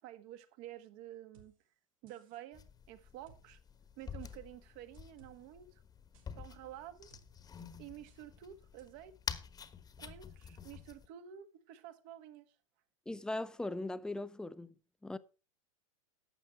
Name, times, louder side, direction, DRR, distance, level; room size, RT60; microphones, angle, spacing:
voice 1, 0.0-1.5 2.0-2.6 2.9-3.6 4.0-5.8 6.3-7.1 7.8-9.2 10.0-12.5, right 11 dB, 50° right, 1.5 m, -50 dB
sound 1, 1.3-1.5 2.1-2.4 3.3-3.4 4.2-4.4 4.9-5.3 6.1-6.3 7.1-7.2 7.6-7.7 8.1-8.2 8.8-8.9, right 6 dB, 75° right, 4.1 m, -62 dB
sound 2, 2.5-11.1, left 7 dB, 20° left, 1.2 m, -48 dB
voice 2, 13.1-14.7 15.0-15.2, left 2 dB, 5° left, 0.6 m, -39 dB
12.5 x 7.9 x 4.5 m
hypercardioid pair, 110°, 17 cm